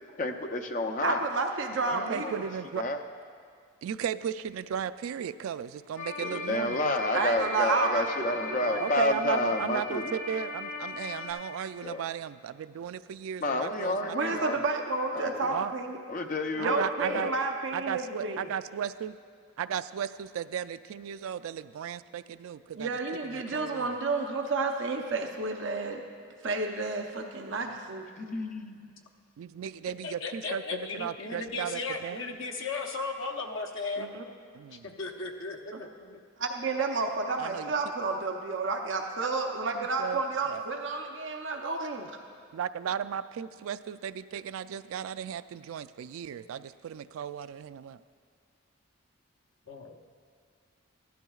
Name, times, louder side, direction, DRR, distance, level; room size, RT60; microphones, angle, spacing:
voice 1, 0.2-1.2 1.8-2.3 2.7-3.0 6.2-10.2 11.8-12.0 13.4-14.6 15.1-15.5 16.1-17.3 28.2-29.0, left 2 dB, 40° left, 4 dB, 0.6 m, -30 dB
voice 2, 1.0-2.4 7.1-8.9 14.1-16.0 16.6-18.5 22.8-26.0 26.4-28.0 34.0-34.2 35.7-35.8 36.4-42.2, right 3 dB, 60° right, 3 dB, 0.7 m, -31 dB
voice 3, 1.9-2.8 3.8-6.9 8.8-14.6 15.5-15.7 16.6-17.3 17.7-19.2 19.6-22.9 23.3-23.9 29.4-32.2 34.5-34.9 37.4-37.7 39.7-40.2 40.5-40.6 42.5-48.0, right 8 dB, 80° right, 14 dB, 0.3 m, -35 dB
sound 1, 6.0-11.3, left 3 dB, 85° left, 2.2 m, -38 dB
voice 4, 30.0-34.1 34.7-36.2 49.7-50.0, left 3 dB, 70° left, 2 dB, 0.8 m, -36 dB
15.0 x 12.0 x 2.4 m, 2.1 s
head